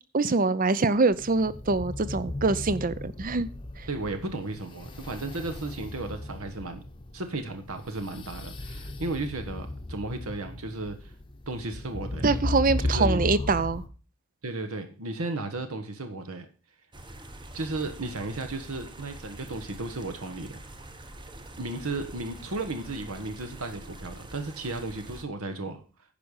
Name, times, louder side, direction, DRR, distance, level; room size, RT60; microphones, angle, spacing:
voice 1, 0.1-3.5 3.8-3.9 12.2-13.8, right 3 dB, 40° right, 0.6 m, -24 dB
sound 1, 1.1-13.9, left 2 dB, 20° left, 0.9 m, -35 dB
voice 2, 3.9-6.8 7.1-11.1 11.5-12.2 12.8-13.3 14.4-16.4 17.5-20.6 21.6-25.8, right 2 dB, 75° right, 1.3 m, -34 dB
sound 2, 16.9-25.3, right 1 dB, 20° right, 0.9 m, -45 dB
10.5 x 5.4 x 6.4 m
head